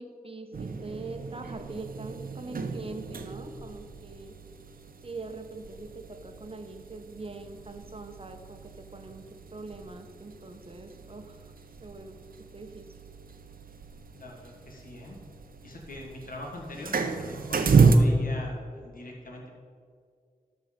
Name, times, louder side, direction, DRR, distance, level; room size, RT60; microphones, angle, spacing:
voice 1, 0.0-4.4 5.0-9.2 9.5-11.4 11.8-12.2 12.5-12.9, right 3 dB, 40° right, 6 dB, 1.0 m, -42 dB
sound 1, 0.5-18.0, right 5 dB, 85° right, 0.6 m, -32 dB
voice 2, 14.1-15.2 15.6-19.5, left 1 dB, 80° left, -1 dB, 1.5 m, -42 dB
13.0 x 4.6 x 5.1 m, 2.1 s
wide cardioid pair, 70°, 14 cm